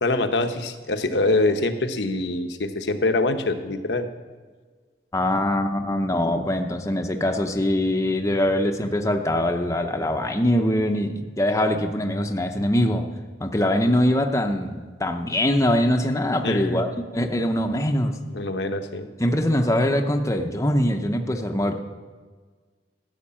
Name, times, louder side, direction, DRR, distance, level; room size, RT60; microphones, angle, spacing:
voice 1, 0.0-4.1 16.4-16.8 18.3-19.1, left 2 dB, 70° left, 7 dB, 1.0 m, -24 dB
voice 2, 5.1-13.1 13.4-18.2 19.2-21.8, left 1 dB, 15° left, 4 dB, 0.8 m, -23 dB
14.5 x 6.5 x 8.7 m, 1.5 s
head